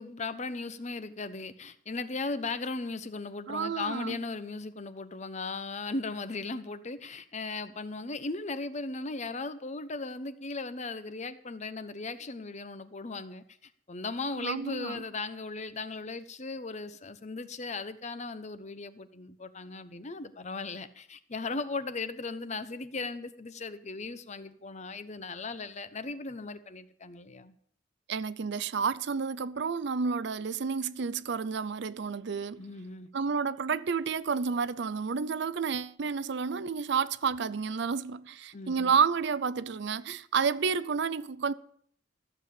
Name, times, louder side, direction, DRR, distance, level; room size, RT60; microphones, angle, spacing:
voice 1, 0.0-13.4 13.9-27.5 32.6-33.1 38.5-38.9, left 3 dB, 35° left, 0.8 m, -37 dB
voice 2, 3.5-4.2 14.4-15.0 28.1-32.6 33.1-41.5, right 5 dB, 60° right, 0.5 m, -30 dB
14.0 x 7.6 x 8.3 m
head